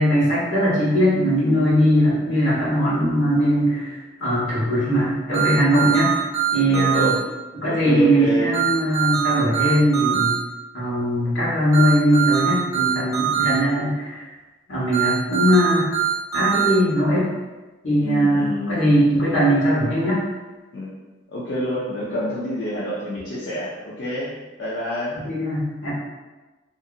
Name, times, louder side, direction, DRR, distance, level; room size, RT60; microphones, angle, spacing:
voice 1, 0.0-6.1 6.5-7.1 7.5-10.4 10.7-14.3 14.7-15.9 16.3-17.3 17.8-20.2 25.1-25.9, equal, 90° left, -7 dB, 1.2 m, -20 dB
sound 1, 5.3-7.1 8.5-10.3 11.7-13.5 14.9-16.7, right 10 dB, 15° right, 0.6 m, -22 dB
voice 2, 6.7-7.2 7.6-8.5 18.0-18.9 20.7-21.0 21.3-24.3 24.6-25.2, equal, 70° left, -8 dB, 0.5 m, -27 dB
2.8 x 2.5 x 2.4 m, 1.2 s
head